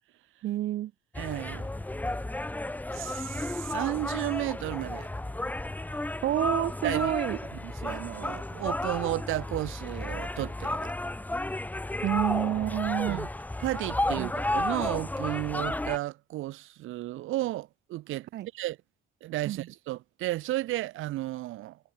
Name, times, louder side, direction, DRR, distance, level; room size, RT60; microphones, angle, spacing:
voice 1, 0.4-0.9 6.2-7.4 12.0-13.2 14.2-14.3 18.3-18.5 19.5-19.7, right 13 dB, 60° right, 0.4 m, -28 dB
sound 1, 1.1-16.0, left 1 dB, 10° left, 0.8 m, -33 dB
voice 2, 1.2-1.7 2.9-5.1 6.8-7.1 7.5-10.9 13.1-13.3 13.6-18.3 18.5-18.8 19.2-21.8, right 16 dB, 85° right, 0.9 m, -33 dB
cardioid pair, 90°, 20 cm